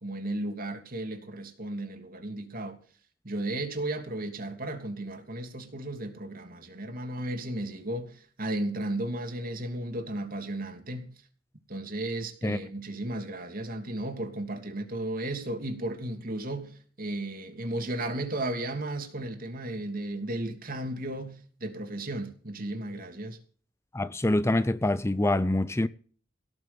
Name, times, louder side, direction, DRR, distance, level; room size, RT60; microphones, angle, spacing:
voice 1, 0.0-2.8 3.2-11.1 11.7-23.4, right 1 dB, 50° right, 3.0 m, -34 dB
voice 2, 23.9-25.9, left 1 dB, 15° left, 0.5 m, -25 dB
18.0 x 6.9 x 7.0 m
head